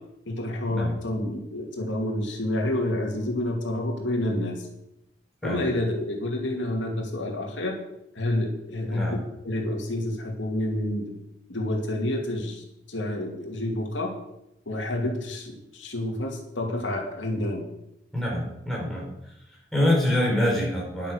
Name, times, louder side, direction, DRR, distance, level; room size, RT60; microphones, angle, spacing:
voice 1, 0.3-4.7 5.4-7.7 8.1-9.2 9.4-11.1 11.5-14.1 14.7-17.6, left 1 dB, 85° left, 1 dB, 2.4 m, -29 dB
voice 2, 18.1-19.1 19.7-21.1, left 1 dB, ahead, -4 dB, 4.8 m, -25 dB
11.0 x 9.2 x 6.5 m, 0.85 s
head